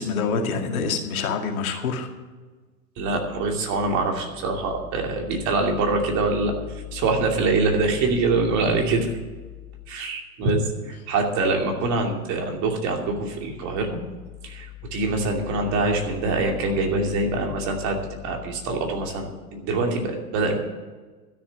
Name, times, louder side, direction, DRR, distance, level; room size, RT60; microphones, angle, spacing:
voice 1, 0.0-2.1, left 5 dB, 65° left, 3 dB, 2.2 m, -26 dB
voice 2, 3.0-9.1 9.9-14.0 14.4-20.6, right 3 dB, 40° right, 2 dB, 2.7 m, -24 dB
12.5 x 7.0 x 9.1 m, 1.3 s
hypercardioid pair, 115°, 45 cm